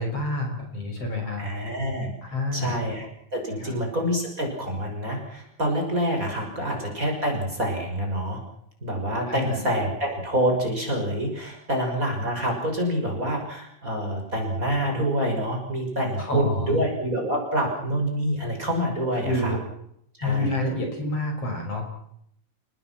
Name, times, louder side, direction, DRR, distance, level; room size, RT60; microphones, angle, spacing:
voice 1, 0.0-1.5 2.3-2.8 3.6-3.7 9.3-9.7 16.2-16.8 19.2-19.6 20.2-21.9, left 1 dB, 45° left, 2 dB, 6.7 m, -28 dB
voice 2, 1.4-3.1 3.3-8.4 8.8-19.6 20.2-20.5, equal, 25° right, 1 dB, 6.3 m, -27 dB
29.5 x 20.0 x 6.0 m, 0.72 s
omnidirectional pair, 3.8 m